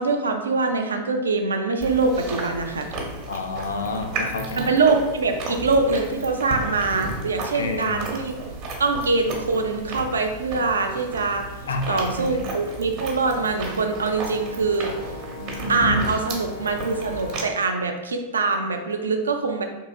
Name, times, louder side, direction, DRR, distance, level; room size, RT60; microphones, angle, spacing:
voice 1, 0.0-2.9 4.6-8.3 8.8-11.5 11.9-14.9 15.7-19.6, right 3 dB, 70° right, 5 dB, 0.3 m, -23 dB
Chewing mastication, 1.8-17.4, right 2 dB, 45° right, 0.8 m, -33 dB
voice 2, 3.3-4.7 7.5-8.1 11.7-12.4, left 3 dB, 70° left, 4 dB, 0.4 m, -29 dB
Brass instrument, 13.3-17.7, equal, 85° left, 1.1 m, -40 dB
3.8 x 2.7 x 2.3 m, 1.1 s
figure-of-eight pair, 90°, 0 cm